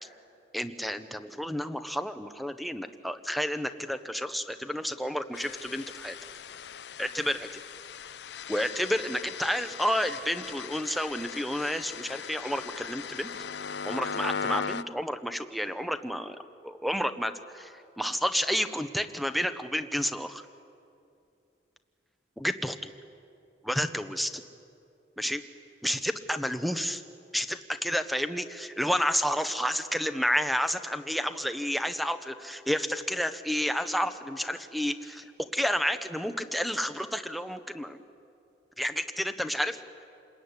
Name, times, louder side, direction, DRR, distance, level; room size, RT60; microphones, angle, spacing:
voice 1, 0.5-6.2 7.0-7.6 8.5-13.3 13.8-20.4 22.4-22.9 23.6-24.4 25.2-25.4 25.8-27.0 27.3-38.0 38.8-39.8, equal, ahead, 8 dB, 1.0 m, -30 dB
sound 1, 5.3-14.8, left 6 dB, 70° left, 0.6 m, -38 dB
28.5 x 21.0 x 9.8 m, 2.6 s
head